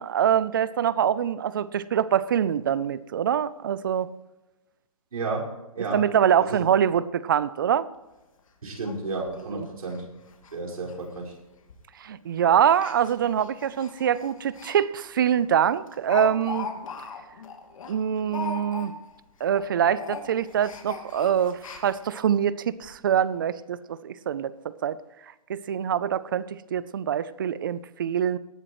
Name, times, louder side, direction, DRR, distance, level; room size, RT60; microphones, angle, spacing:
voice 1, 0.0-4.1 5.9-7.9 9.5-9.7 12.0-16.7 17.9-18.9 19.4-25.0 25.5-28.4, right 9 dB, 35° right, 18 dB, 0.6 m, -24 dB
voice 2, 5.1-6.1 6.4-6.6 8.6-10.1 10.5-11.3 18.2-18.3, right 3 dB, 85° right, -3 dB, 5.3 m, -32 dB
Speech, 7.9-8.0 8.4-8.5 8.8-8.9 9.3-9.4 9.9-10.0 10.3-10.6 10.8-10.9 11.7-11.9 12.7-14.8 15.1-15.2 15.6-19.2 19.4-19.7 19.9-22.2 22.8-22.9 23.2-23.3, left 5 dB, 65° left, 2.7 m, -38 dB
18.0 x 12.5 x 3.1 m, 1.0 s
hypercardioid pair, 170°, 18 cm